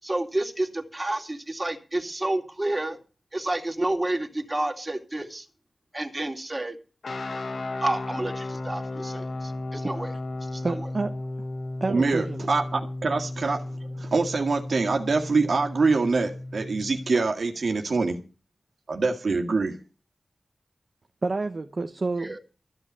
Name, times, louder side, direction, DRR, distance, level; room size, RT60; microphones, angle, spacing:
voice 1, 0.0-3.0 3.3-5.5 5.9-6.8 7.8-10.1 10.4-10.9 22.2-22.4, right 1 dB, 25° right, 2.7 m, -30 dB
sound 1, 7.0-17.2, left 2 dB, 85° left, 1.2 m, -34 dB
voice 2, 10.6-11.2 11.8-12.5 21.2-22.4, right 3 dB, 60° right, 1.1 m, -29 dB
voice 3, 11.9-18.2 18.9-19.8, right 4 dB, 85° right, 2.0 m, -25 dB
14.5 x 6.0 x 9.2 m
wide cardioid pair, 60°, 0 cm